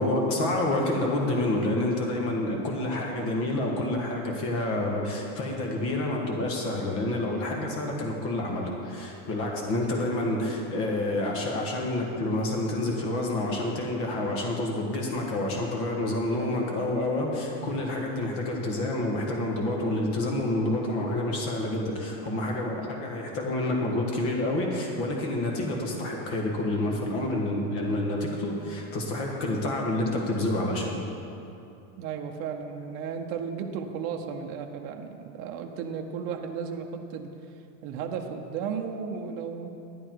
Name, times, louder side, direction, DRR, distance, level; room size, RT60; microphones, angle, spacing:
voice 1, 0.0-31.0, left 1 dB, 35° left, 0 dB, 1.5 m, -28 dB
voice 2, 32.0-37.3 37.8-39.7, right 6 dB, 40° right, 3 dB, 0.8 m, -34 dB
11.0 x 9.9 x 4.6 m, 2.7 s
supercardioid pair, 170°, 40 cm